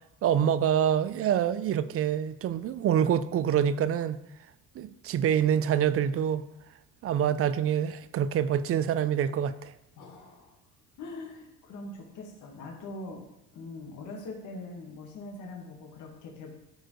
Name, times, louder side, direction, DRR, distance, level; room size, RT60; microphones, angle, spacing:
voice 1, 0.2-4.2 4.8-6.4 7.0-9.7, right 9 dB, 45° right, 0.4 m, -26 dB
voice 2, 10.0-10.6 11.0-13.2 13.5-16.5, left 2 dB, 60° left, 1.6 m, -42 dB
13.5 x 4.5 x 3.1 m
cardioid pair, 130°, 34 cm